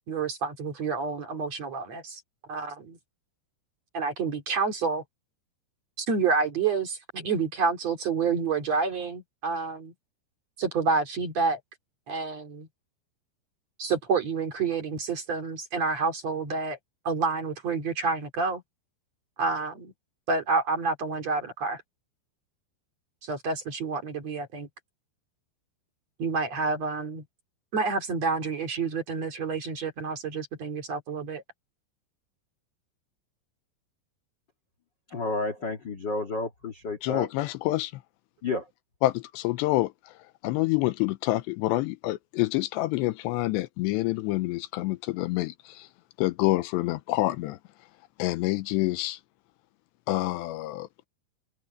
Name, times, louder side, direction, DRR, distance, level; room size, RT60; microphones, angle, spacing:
voice 1, 0.1-2.2 2.5-3.0 3.9-5.0 6.0-9.9 10.6-11.6 12.1-12.7 13.8-16.8 17.0-18.6 19.4-19.9 20.3-21.8 23.2-24.7 26.2-27.2 27.7-31.4, right 4 dB, 45° right, 3.1 m, -28 dB
voice 2, 35.1-37.3 38.4-38.6, left 2 dB, 50° left, 1.3 m, -31 dB
voice 3, 37.0-37.9 39.0-39.9 40.4-45.9 46.2-47.6 48.2-49.2 50.1-50.9, left 18 dB, 85° left, 2.8 m, -27 dB
open air
omnidirectional pair, 5.1 m